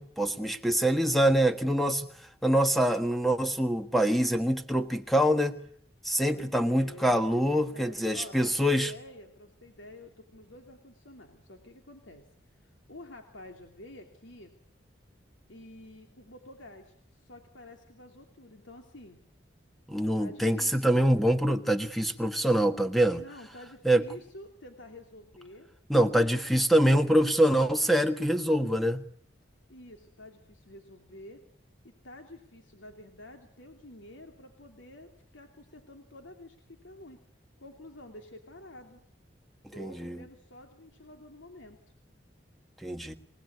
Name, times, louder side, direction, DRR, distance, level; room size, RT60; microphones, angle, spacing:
voice 1, 0.0-2.1 2.4-5.6 6.0-8.9 19.9-23.2 23.8-24.0 25.9-29.1 39.8-40.2 42.8-43.1, right 1 dB, ahead, 1.4 m, -25 dB
voice 2, 6.3-12.2 12.5-14.5 15.5-19.2 20.2-21.0 23.2-25.7 26.1-26.5 29.7-31.4 31.8-37.2 37.6-39.0 39.7-41.8, left 1 dB, 80° left, 2.9 m, -49 dB
27.5 x 19.0 x 9.6 m
head